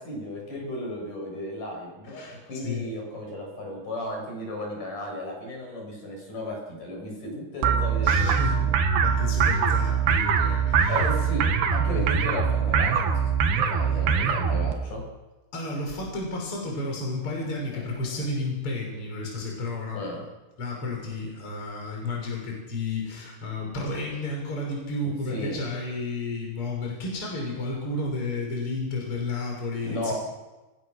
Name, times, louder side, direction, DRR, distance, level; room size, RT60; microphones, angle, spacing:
voice 1, 0.0-8.8 10.9-15.0 17.7-17.8 19.9-20.2 25.3-25.6 29.8-30.1, left 1 dB, 55° left, 0 dB, 8.6 m, -35 dB
voice 2, 2.1-2.8 8.0-8.6 9.0-11.0 11.9-12.1 15.5-20.0 20.6-30.1, left 2 dB, 35° left, 0 dB, 6.5 m, -32 dB
sound 1, 7.6-14.7, right 6 dB, 90° right, 3.7 m, -23 dB
29.5 x 19.5 x 6.6 m, 1.2 s
omnidirectional pair, 4.5 m